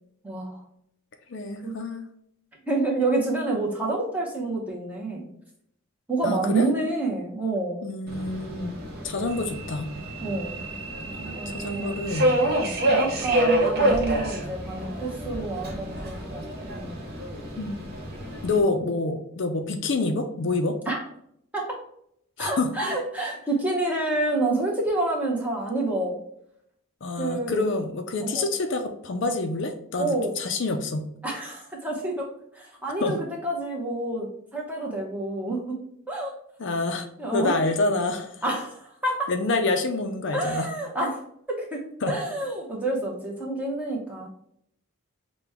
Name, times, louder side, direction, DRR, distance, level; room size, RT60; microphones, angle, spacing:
voice 1, 0.2-0.6 1.6-1.7 2.7-5.3 6.1-7.9 10.2-10.6 11.2-11.9 12.6-17.0 18.3-18.5 20.9-21.0 21.5-21.8 22.4-26.2 27.2-27.6 28.2-28.5 30.0-30.3 31.2-32.3 32.5-33.2 33.4-35.7 36.1-36.3 37.2-37.6 38.4-39.3 40.3-41.2 41.5-44.3, right 2 dB, 5° right, -2 dB, 0.8 m, -28 dB
voice 2, 1.3-2.0 6.2-6.7 7.8-8.7 9.0-9.9 11.5-12.3 17.6-17.9 18.4-20.8 22.4-22.7 27.0-31.1 33.0-33.2 36.6-37.1 37.3-38.4 39.3-40.7 42.0-42.1, left 3 dB, 55° left, 6 dB, 0.4 m, -27 dB
Subway metro underground, 8.1-18.6, right 1 dB, 45° right, 0.9 m, -28 dB
5.8 x 2.2 x 3.5 m, 0.71 s
head